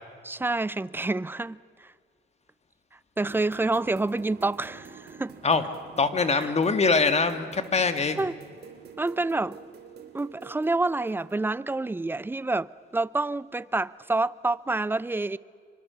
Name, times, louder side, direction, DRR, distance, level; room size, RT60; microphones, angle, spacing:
voice 1, 0.2-1.9 3.2-5.4 6.4-6.5 8.2-8.4 9.0-9.6 10.1-15.4, right 2 dB, 10° right, 0.5 m, -28 dB
sound 1, 3.2-11.5, right 6 dB, 55° right, 2.8 m, -48 dB
voice 2, 6.0-8.2, left 4 dB, 35° left, 1.8 m, -23 dB
25.0 x 24.5 x 7.0 m
cardioid pair, 90°, 20 cm